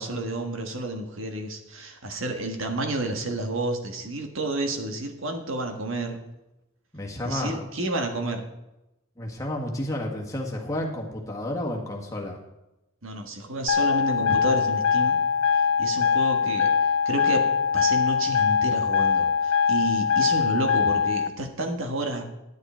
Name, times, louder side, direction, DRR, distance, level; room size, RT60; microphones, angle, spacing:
voice 1, 0.0-6.2 7.2-8.4 13.0-15.2 15.8-16.7 17.0-17.5 17.7-22.2, right 1 dB, 65° right, 4 dB, 1.6 m, -30 dB
voice 2, 6.9-7.6 9.2-12.4, left 1 dB, 15° left, -1 dB, 1.7 m, -31 dB
sound 1, 13.7-21.3, left 6 dB, 75° left, 0.7 m, -22 dB
11.0 x 9.9 x 4.4 m, 0.94 s
head